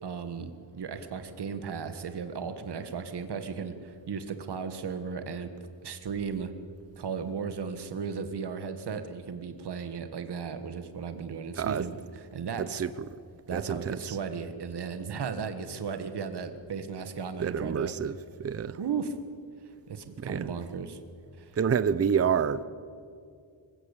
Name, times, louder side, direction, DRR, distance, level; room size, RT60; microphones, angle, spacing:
voice 1, 0.0-5.5 5.8-6.5 7.0-12.0 12.3-12.8 13.5-17.9 18.8-19.1 19.9-21.0 21.4-21.5, right 6 dB, 60° right, 1.6 m, -35 dB
voice 2, 11.6-11.9 12.6-13.1 13.5-14.2 17.4-18.8 20.2-20.5 21.6-22.6, right 7 dB, 35° right, 0.6 m, -28 dB
25.5 x 16.0 x 8.3 m
wide cardioid pair, 130°, 45 cm